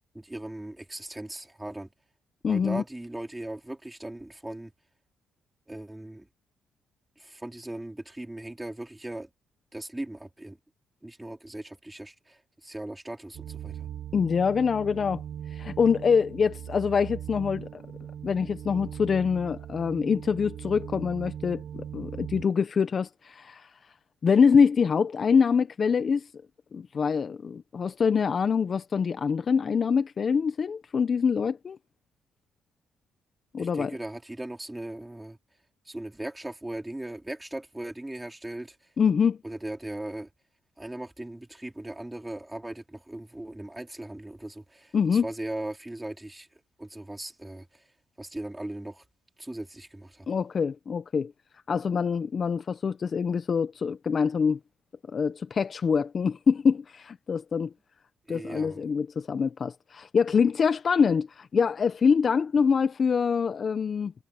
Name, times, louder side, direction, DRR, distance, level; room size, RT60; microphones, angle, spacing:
voice 1, 0.1-1.9 2.5-4.7 5.7-6.3 7.2-9.3 9.7-10.6 11.0-13.9 33.6-35.4 35.9-38.8 39.4-40.3 40.8-46.5 46.8-47.8 48.2-49.0 49.4-50.3 58.3-58.8, right 1 dB, 10° right, 4.2 m, -38 dB
voice 2, 2.4-2.8 14.1-15.2 15.5-17.8 18.2-23.7 24.2-26.3 26.7-31.8 33.5-34.0 39.0-39.4 44.9-45.3 50.3-51.3 51.7-54.6 55.1-57.7 58.3-64.1, left 6 dB, 45° left, 0.9 m, -25 dB
sound 1, 13.3-22.5, right 10 dB, 65° right, 0.8 m, -40 dB
cardioid pair, 90°, 0 cm